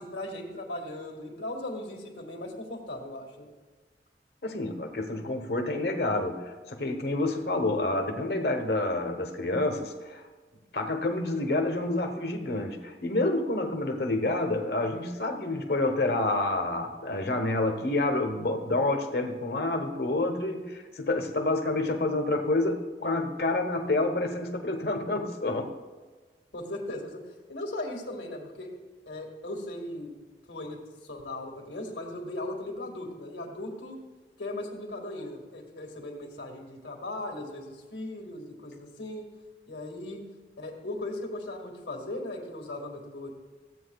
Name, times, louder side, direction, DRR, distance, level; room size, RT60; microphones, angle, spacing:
voice 1, 0.0-3.5 26.5-28.7 29.1-30.1 30.5-34.0 34.4-39.2 39.7-40.2 40.6-43.3, left 1 dB, 90° left, 1 dB, 2.1 m, -38 dB
voice 2, 4.4-10.2 10.7-25.7, left 2 dB, 60° left, 4 dB, 1.1 m, -28 dB
15.0 x 8.7 x 2.4 m, 1.4 s
head